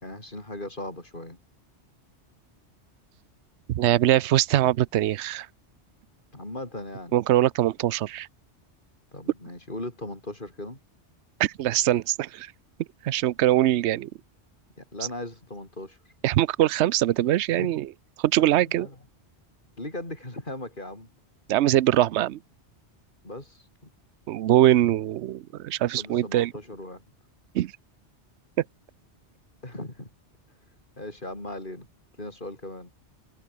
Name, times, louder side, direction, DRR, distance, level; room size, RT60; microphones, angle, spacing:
voice 1, 0.0-1.4 6.3-7.2 9.1-10.8 14.8-16.0 17.5-17.8 18.4-19.0 19.8-21.1 23.2-23.6 26.0-27.0 29.6-30.1 31.0-31.9 32.2-32.9, left 1 dB, 45° left, 5.2 m, -38 dB
voice 2, 3.7-5.5 7.1-8.3 11.4-12.5 13.0-14.1 16.2-17.9 18.2-18.9 21.5-22.4 24.3-26.5 27.5-27.7, right 13 dB, 75° right, 0.9 m, -22 dB
omnidirectional pair, 1.2 m